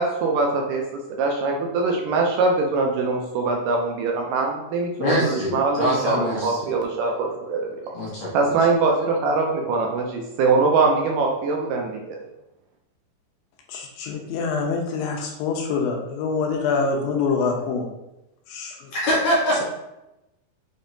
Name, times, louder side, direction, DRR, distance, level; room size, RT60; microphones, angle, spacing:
voice 1, 0.0-7.8 8.3-12.2, right 3 dB, 80° right, 1 dB, 2.0 m, -23 dB
voice 2, 5.0-6.7 7.9-8.3 18.9-19.6, equal, 65° left, -5 dB, 2.0 m, -23 dB
voice 3, 13.7-17.9 18.5-18.9, left 4 dB, 80° left, 1 dB, 2.4 m, -25 dB
5.8 x 3.4 x 2.7 m, 0.92 s
omnidirectional pair, 4.1 m